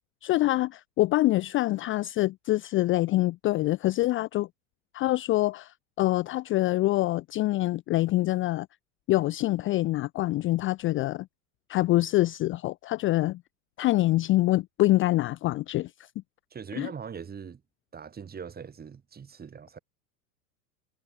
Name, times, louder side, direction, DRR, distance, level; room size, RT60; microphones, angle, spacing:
voice 1, 0.2-4.5 4.9-8.7 9.1-11.3 11.7-13.4 13.8-15.9 16.8-16.9, left 17 dB, 25° left, 0.5 m, -25 dB
voice 2, 16.5-17.6 17.9-19.8, right 6 dB, 20° right, 2.5 m, -41 dB
hypercardioid pair, 100°, 47 cm